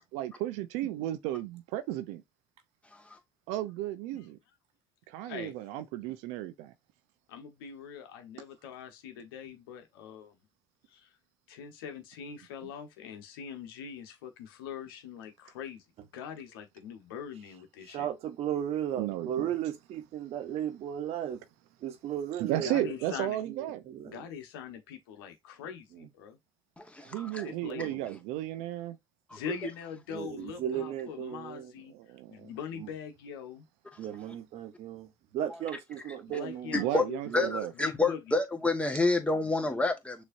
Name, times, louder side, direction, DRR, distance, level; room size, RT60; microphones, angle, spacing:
voice 1, 0.1-2.2 3.5-4.4 5.1-6.7 12.6-12.7 19.0-19.5 22.4-23.8 27.0-29.0 31.9-32.5 36.7-37.7, right 13 dB, 75° right, 0.7 m, -34 dB
voice 2, 7.3-10.3 10.9-11.1 11.5-15.8 16.1-18.1 22.6-23.4 24.1-26.4 27.4-28.1 29.3-31.9 32.3-33.6 36.3-37.2 37.8-38.2, left 7 dB, 85° left, 1.1 m, -42 dB
voice 3, 17.8-21.4 21.8-23.0 23.5-24.2 25.9-26.1 28.1-28.2 30.1-31.7 32.7-32.9 34.0-36.9 37.3-37.5, right 10 dB, 60° right, 1.1 m, -35 dB
voice 4, 26.8-27.4 29.3-29.4 36.7-37.0 37.3-40.2, left 3 dB, 10° left, 1.5 m, -28 dB
6.5 x 3.0 x 2.6 m
hypercardioid pair, 65°, 12 cm